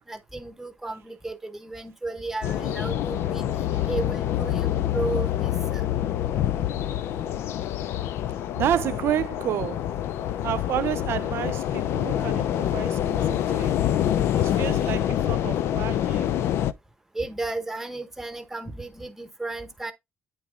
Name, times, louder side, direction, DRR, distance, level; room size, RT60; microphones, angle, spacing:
voice 1, 0.1-3.5 3.9-5.8 17.1-19.9, right 2 dB, 5° right, 0.9 m, -33 dB
sound 1, 2.4-16.7, left 11 dB, 75° left, 0.4 m, -26 dB
voice 2, 8.5-9.9 10.4-13.8 14.4-16.3, right 11 dB, 65° right, 0.5 m, -30 dB
8.8 x 3.0 x 3.7 m
cardioid pair, 125°, 4 cm